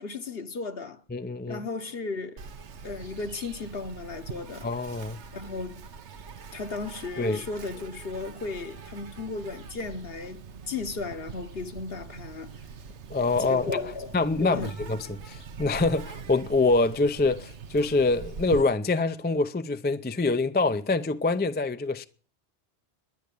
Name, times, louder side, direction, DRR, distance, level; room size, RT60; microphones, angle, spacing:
voice 1, 0.0-1.0 1.5-2.4 2.8-4.7 5.3-5.8 6.5-12.6 13.4-14.7, left 4 dB, 60° left, 1.4 m, -35 dB
voice 2, 1.1-1.6 4.6-5.2 7.2-7.4 13.1-13.6 14.1-22.0, left 3 dB, 15° left, 0.4 m, -25 dB
Insect, 2.4-18.6, right 5 dB, 85° right, 1.2 m, -43 dB
11.0 x 10.5 x 8.4 m
omnidirectional pair, 1.1 m